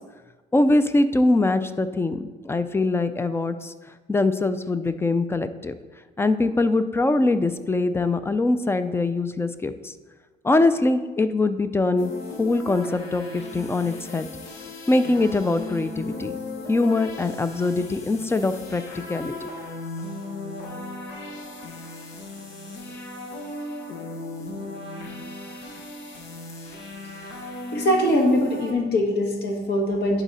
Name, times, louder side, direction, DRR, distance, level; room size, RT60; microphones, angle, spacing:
voice 1, 0.5-3.7 4.1-5.7 6.2-9.9 10.4-12.1 12.4-14.3 14.9-16.3 16.7-19.5, left 2 dB, 15° left, 11 dB, 0.4 m, -23 dB
sound 1, 12.0-28.7, left 2 dB, 85° left, 1.2 m, -36 dB
voice 2, 27.7-30.2, left 1 dB, 65° left, 2 dB, 1.5 m, -22 dB
11.0 x 4.0 x 4.2 m, 1.3 s
cardioid pair, 105°, 18 cm